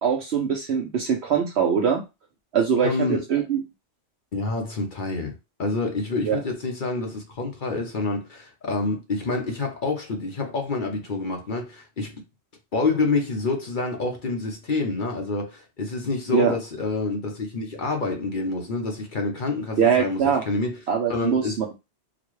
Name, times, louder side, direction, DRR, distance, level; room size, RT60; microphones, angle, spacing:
voice 1, 0.0-2.0 2.5-3.6 6.2-6.4 16.3-16.5 19.8-20.4 20.9-21.8, right 7 dB, 70° right, 0.9 m, -22 dB
voice 2, 2.8-3.2 4.3-12.1 12.7-20.8 21.1-21.6, left 3 dB, 50° left, 0.9 m, -27 dB
3.9 x 2.2 x 3.1 m
omnidirectional pair, 1.2 m